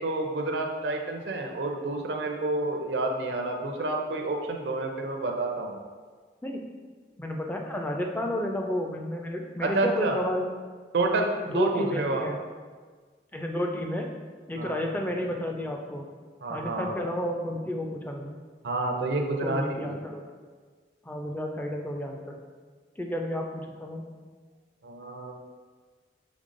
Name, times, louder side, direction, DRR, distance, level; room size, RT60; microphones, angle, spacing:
voice 1, 0.0-5.8 9.6-10.2 10.9-12.3 14.6-14.8 16.4-17.0 18.6-20.0 24.8-25.3, right 2 dB, 75° right, 3 dB, 0.5 m, -29 dB
voice 2, 7.2-10.5 11.5-12.4 13.3-14.1 14.5-16.1 16.5-18.4 19.4-20.2 21.0-22.4 23.0-24.1, left 1 dB, 10° left, 1 dB, 0.3 m, -31 dB
5.2 x 3.4 x 2.5 m, 1.5 s
head